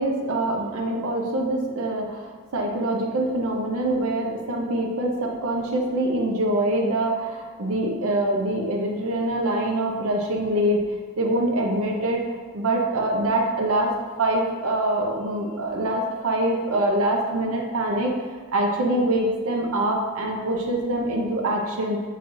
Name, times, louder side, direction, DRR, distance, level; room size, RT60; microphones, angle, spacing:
voice 1, 0.0-10.8 11.2-12.2 12.5-13.9 14.2-18.1 18.5-22.0, right 1 dB, 80° right, 0 dB, 0.6 m, -24 dB
5.3 x 3.3 x 2.6 m, 1.5 s
head